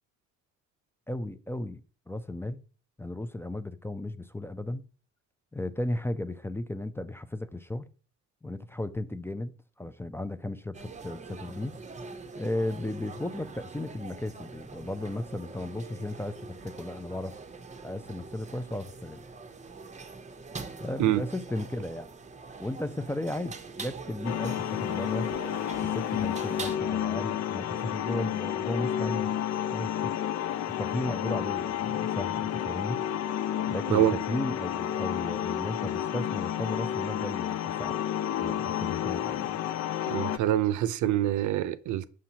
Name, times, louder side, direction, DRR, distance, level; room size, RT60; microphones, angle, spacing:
voice 1, 1.1-1.8 2.1-2.6 3.0-4.8 5.5-7.9 8.4-9.5 9.8-11.8 12.3-17.3 17.8-19.2 20.8-22.1 22.6-25.3 25.8-29.3 29.7-30.1 30.6-33.0 33.7-38.0 38.4-39.6, left 1 dB, 10° left, 0.4 m, -35 dB
sound 1, 10.7-26.8, right 4 dB, 25° right, 0.7 m, -43 dB
sound 2, 24.2-40.4, left 10 dB, 60° left, 0.5 m, -31 dB
voice 2, 33.9-34.2 40.1-42.0, right 12 dB, 80° right, 0.5 m, -25 dB
6.2 x 5.7 x 2.8 m
cardioid pair, 90°, 30 cm